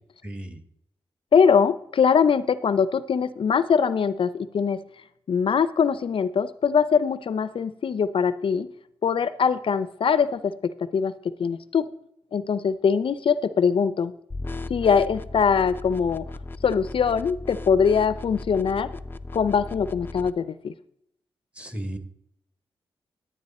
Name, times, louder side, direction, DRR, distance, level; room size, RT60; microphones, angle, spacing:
voice 1, 0.2-0.6 21.5-22.0, right 1 dB, 10° right, 7 dB, 1.7 m, -34 dB
voice 2, 1.3-4.8 5.3-8.7 9.0-11.9 12.3-14.1 14.7-16.2 16.6-18.9 19.3-20.7, left 6 dB, 60° left, 15 dB, 0.5 m, -22 dB
sound 1, 14.3-20.3, left 2 dB, 20° left, 0.6 m, -37 dB
11.0 x 8.5 x 4.2 m, 0.72 s
cardioid pair, 60°, 10 cm